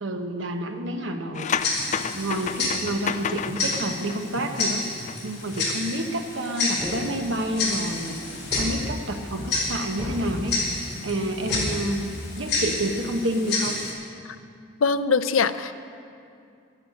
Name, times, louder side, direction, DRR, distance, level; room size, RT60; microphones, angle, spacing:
voice 1, 0.0-1.5 2.1-4.8 5.2-8.2 8.6-10.6 11.0-13.8, right 1 dB, 65° right, 5 dB, 1.1 m, -29 dB
sound 1, 1.3-5.2 5.4-5.7, left 6 dB, 35° left, 0.4 m, -31 dB
Tick-tock, 1.6-13.9, left 3 dB, 55° left, 3.7 m, -30 dB
sound 2, 6.8-7.5 8.5-9.3 10.0-10.8 11.5-12.5, left 1 dB, 5° right, 3.2 m, -34 dB
voice 2, 14.8-15.7, left 5 dB, 90° left, 12 dB, 0.6 m, -22 dB
11.0 x 10.5 x 8.4 m, 2.4 s
head